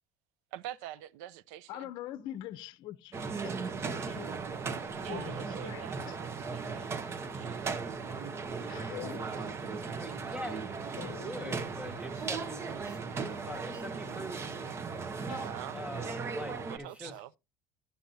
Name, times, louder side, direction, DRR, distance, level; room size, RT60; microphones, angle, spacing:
voice 1, 0.5-1.9 5.0-6.9 7.2-7.8 9.6-10.1 15.3-15.8 16.7-17.3, right 13 dB, 85° right, 0.5 m, -46 dB
voice 2, 1.7-3.2 3.4-4.6 5.1-6.2 6.5-6.7 8.7-9.6 11.0-11.6 13.2-13.5 15.3-15.8 17.0-17.1, left 13 dB, 60° left, 0.7 m, -44 dB
sound 1, 3.1-16.8, right 4 dB, 30° right, 0.9 m, -37 dB
voice 3, 9.8-13.0 13.4-14.4 15.7-17.1, equal, 10° right, 1.6 m, -43 dB
11.5 x 6.8 x 2.7 m
cardioid pair, 125°, 9 cm